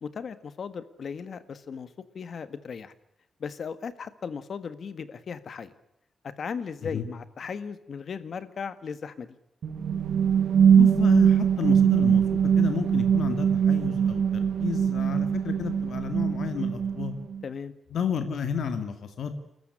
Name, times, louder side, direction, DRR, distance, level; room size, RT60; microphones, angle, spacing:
voice 1, 0.0-1.9 2.1-2.9 3.4-5.7 6.2-9.4 17.4-17.7, left 6 dB, 55° left, 13 dB, 1.7 m, -37 dB
sound 1, 9.6-17.4, right 8 dB, 70° right, 1.2 m, -22 dB
voice 2, 10.8-17.1 17.9-19.4, left 7 dB, 75° left, 8 dB, 2.4 m, -31 dB
29.0 x 14.0 x 10.0 m, 0.78 s
wide cardioid pair, 155°, 0 cm